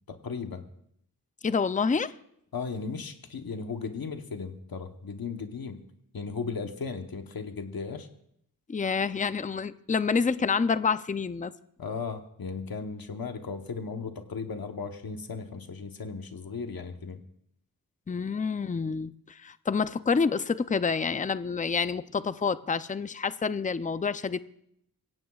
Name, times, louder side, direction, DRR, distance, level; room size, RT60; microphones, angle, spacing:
voice 1, 0.1-0.6 2.5-5.8 6.1-8.1 11.8-17.2, left 5 dB, 80° left, 6 dB, 1.1 m, -36 dB
voice 2, 1.4-2.1 8.7-11.5 18.1-24.4, left 5 dB, 25° left, 13 dB, 0.4 m, -28 dB
23.0 x 17.0 x 2.4 m, 0.73 s
wide cardioid pair, 95°, 35 cm